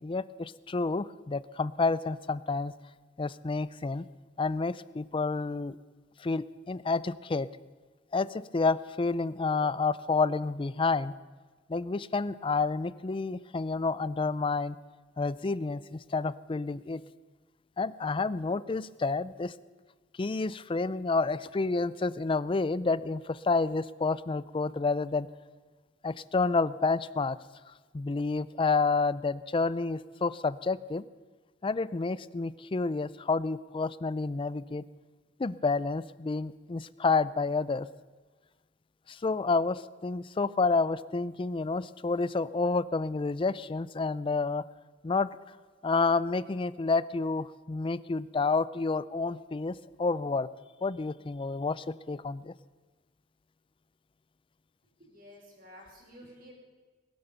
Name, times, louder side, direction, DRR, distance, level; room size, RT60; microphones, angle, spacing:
voice 1, 0.0-2.7 3.2-4.1 4.4-5.8 6.2-7.5 8.1-11.1 11.7-14.8 15.2-17.0 17.8-19.5 20.2-25.3 26.0-27.4 27.7-31.0 31.6-34.8 35.4-37.9 39.1-44.6 45.0-45.3 45.8-50.5 50.8-52.5, left 3 dB, 30° left, 17 dB, 0.4 m, -29 dB
voice 2, 55.0-56.5, equal, 50° right, -1 dB, 4.9 m, -52 dB
20.5 x 8.9 x 6.8 m, 1.4 s
head